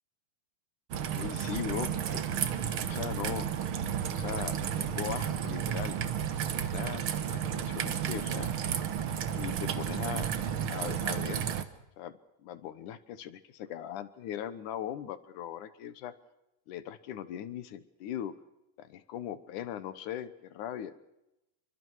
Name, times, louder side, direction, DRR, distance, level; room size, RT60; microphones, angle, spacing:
Raindrop / Trickle dribble, 0.9-11.6, right 8 dB, 60° right, 1.5 m, -32 dB
voice 1, 1.1-2.2 2.8-3.5 4.1-6.0 6.6-8.6 9.3-10.3 10.7-11.4 12.0-12.1 12.4-16.1 16.7-18.3 18.8-20.9, left 10 dB, 70° left, 13 dB, 2.5 m, -39 dB
27.0 x 24.5 x 4.7 m, 0.88 s
omnidirectional pair, 3.8 m